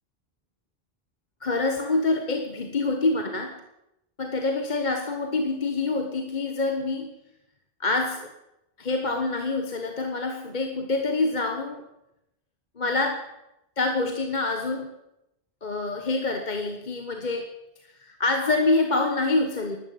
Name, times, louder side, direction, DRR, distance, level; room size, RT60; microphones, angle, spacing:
voice 1, 1.4-3.6 4.2-7.1 7.8-8.3 8.8-11.9 12.8-13.3 13.8-14.9 15.6-17.5 17.8-19.8, left 3 dB, 45° left, 5 dB, 1.4 m, -26 dB
12.5 x 12.0 x 8.4 m, 0.86 s
omnidirectional pair, 1.1 m